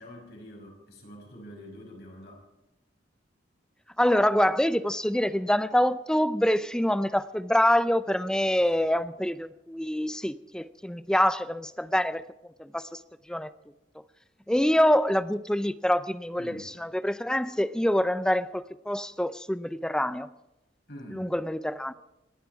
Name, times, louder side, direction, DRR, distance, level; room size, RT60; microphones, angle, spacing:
voice 1, 0.0-2.4 8.6-9.0 16.4-16.7 20.9-21.4, equal, 60° left, 5.7 m, -46 dB
voice 2, 4.0-12.2 12.6-13.0 13.3-13.5 14.5-20.3 21.1-21.9, left 1 dB, 5° left, 0.5 m, -25 dB
27.5 x 11.0 x 4.7 m
head